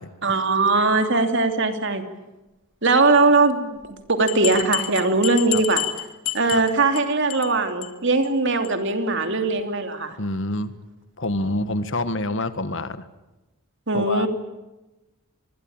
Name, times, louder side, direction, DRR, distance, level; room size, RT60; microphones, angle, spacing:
voice 1, 0.2-2.0 2.8-3.7 4.1-5.8 6.3-10.2 13.9-14.3, right 3 dB, 55° right, 7 dB, 3.0 m, -20 dB
sound 1, 3.8-3.9 4.3-7.0 7.3-7.5 7.8-7.9 8.2-8.3 8.6-8.7, left 15 dB, 75° left, 2.6 m, -29 dB
voice 2, 10.2-10.7 11.2-13.1 13.9-14.3, left 2 dB, 60° left, 12 dB, 1.6 m, -27 dB
26.0 x 21.5 x 8.9 m, 1.0 s
head